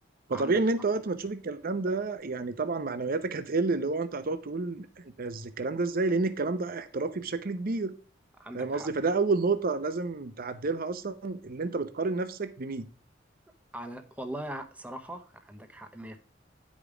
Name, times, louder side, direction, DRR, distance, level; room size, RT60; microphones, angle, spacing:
voice 1, 0.3-4.9 5.2-7.9 8.5-12.9, right 3 dB, 50° right, 10 dB, 0.7 m, -29 dB
voice 2, 8.4-8.9 13.7-16.2, right 1 dB, 10° right, 5 dB, 0.8 m, -40 dB
9.5 x 5.2 x 4.8 m, 0.36 s
head